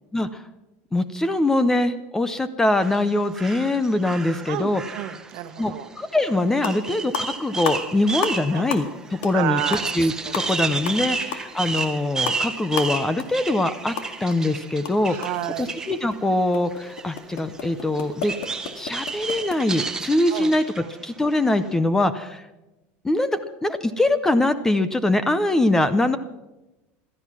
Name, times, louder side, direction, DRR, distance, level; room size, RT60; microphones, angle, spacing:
voice 1, 0.1-0.4 0.9-4.8 5.6-9.6 10.0-13.9 14.2-15.2 15.6-18.3 18.7-22.4 23.0-26.2, left 2 dB, 10° left, 13 dB, 0.6 m, -23 dB
sound 1, 2.8-16.2 16.7-21.0 21.3-21.7, right 4 dB, 10° right, 1.0 m, -32 dB
voice 2, 4.5-5.9 8.5-8.7 9.3-9.8 10.4-10.5 10.9-11.2 15.0-15.7 20.3-20.5 20.8-20.9, right 14 dB, 55° right, 7 dB, 1.3 m, -31 dB
sound 2, 6.2-6.3 6.5-6.9 7.1-8.4 8.7-9.0 9.2-9.4 9.7-14.4 14.7-19.6, left 8 dB, 65° left, 2.1 m, -33 dB
16.5 x 13.0 x 6.1 m, 1.0 s
cardioid pair, 165°, 6 cm